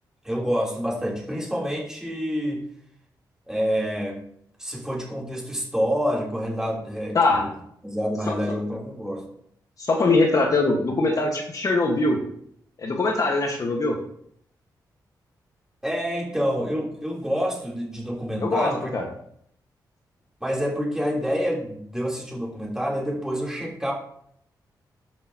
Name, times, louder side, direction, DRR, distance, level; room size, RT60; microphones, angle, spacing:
voice 1, 0.2-2.6 3.5-4.2 4.6-7.5 7.8-9.2 15.8-18.9 20.4-23.9, equal, 5° right, -3 dB, 3.4 m, -27 dB
voice 2, 9.8-12.2 12.8-14.0 18.4-19.0, left 2 dB, 50° left, 1 dB, 1.5 m, -22 dB
12.5 x 6.6 x 2.9 m, 0.68 s
cardioid pair, 90°, 8 cm